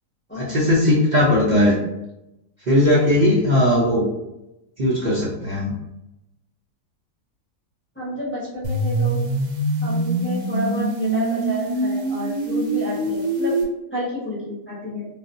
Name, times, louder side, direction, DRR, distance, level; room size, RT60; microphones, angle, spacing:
voice 1, 0.4-1.8 2.7-4.0 4.8-5.7, left 1 dB, 85° right, -7 dB, 0.4 m, -18 dB
voice 2, 7.9-9.3 9.8-13.6 13.9-15.1, equal, 10° left, -8 dB, 0.7 m, -30 dB
sound 1, 8.6-13.6, right 2 dB, 65° right, 0.8 m, -24 dB
3.4 x 2.4 x 2.5 m, 0.90 s
omnidirectional pair, 1.7 m